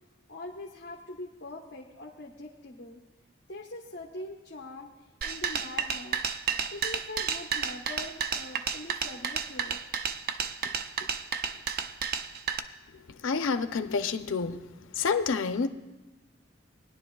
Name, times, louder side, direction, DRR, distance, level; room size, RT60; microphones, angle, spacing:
voice 1, 0.3-3.0 3.5-4.9 5.2-6.2 6.7-9.8 10.6-10.7 11.0-11.1 11.5-11.6, left 2 dB, 60° left, -1 dB, 1.0 m, -42 dB
sound 1, 5.2-12.6, right 7 dB, 50° right, 0.5 m, -31 dB
voice 2, 13.2-14.6 14.9-15.7, left 5 dB, 90° left, 9 dB, 0.6 m, -28 dB
20.0 x 10.5 x 2.3 m, 1.1 s
head